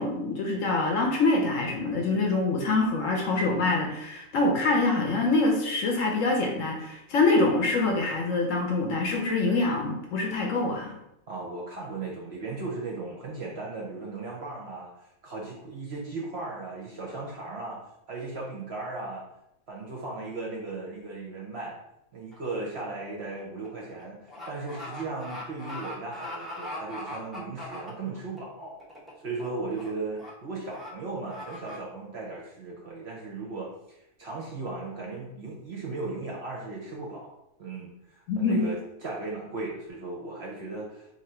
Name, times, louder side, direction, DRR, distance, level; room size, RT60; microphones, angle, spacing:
voice 1, 0.0-10.9 38.3-38.7, left 3 dB, 65° left, 1 dB, 1.0 m, -25 dB
voice 2, 11.3-14.9 15.2-17.8 18.1-19.2 19.7-21.8 22.1-28.8 29.2-37.3 37.6-38.8 39.0-41.1, right 3 dB, 55° right, -2 dB, 0.8 m, -36 dB
sound 1, 22.3-22.6 22.9-28.4 28.8-29.1 29.4-29.9 30.2-30.3 30.7-30.9 31.3-31.8, left 1 dB, ahead, 0.4 m, -40 dB
2.9 x 2.6 x 4.3 m, 0.83 s
omnidirectional pair, 1.6 m